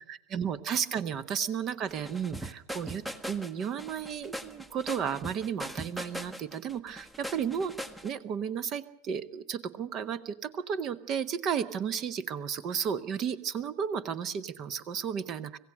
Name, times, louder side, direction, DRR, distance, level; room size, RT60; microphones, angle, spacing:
voice 1, 0.1-7.7 8.0-15.6, right 7 dB, 30° right, 16 dB, 1.1 m, -33 dB
sound 1, 1.9-8.1, equal, 5° right, 1.1 m, -40 dB
25.5 x 16.5 x 6.4 m, 0.72 s
figure-of-eight pair, 90°, 0 cm